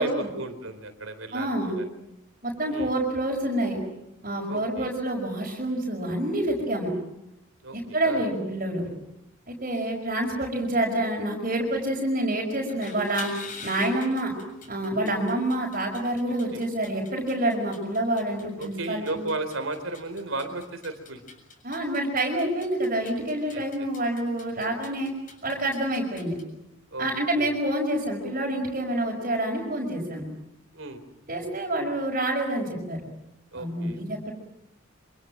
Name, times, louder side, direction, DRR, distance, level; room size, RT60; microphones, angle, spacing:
voice 1, 0.0-1.9 2.7-2.9 4.5-4.9 7.6-7.8 8.0-8.3 15.0-15.2 16.5-16.6 18.6-21.2 23.5-23.6 26.9-27.5 30.7-31.0 33.5-34.0, right 2 dB, 75° right, 8 dB, 3.8 m, -35 dB
voice 2, 1.3-1.7 2.4-3.8 4.2-6.9 7.7-8.9 9.5-13.3 13.6-14.3 14.7-19.2 21.6-25.1 25.4-26.4 27.0-30.2 31.3-33.0 33.5-34.3, right 1 dB, 40° right, -2 dB, 5.4 m, -27 dB
sound 1, 12.7-26.4, left 4 dB, 40° left, 7.3 m, -46 dB
27.0 x 26.5 x 7.5 m, 0.83 s
head